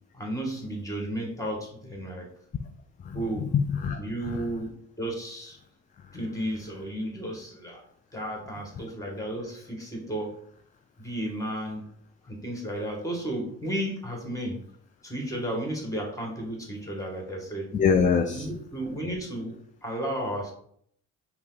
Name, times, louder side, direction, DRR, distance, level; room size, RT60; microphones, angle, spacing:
voice 1, 0.1-2.3 3.1-3.5 4.0-5.6 6.1-7.8 8.1-10.3 11.0-11.9 12.2-14.6 15.0-17.7 18.3-19.5 19.8-20.5, right 1 dB, 10° left, 0 dB, 1.7 m, -33 dB
voice 2, 3.0-4.5 17.7-18.5, left 6 dB, 25° left, 5 dB, 0.4 m, -25 dB
5.3 x 2.2 x 4.0 m, 0.66 s
cardioid pair, 90°, 30 cm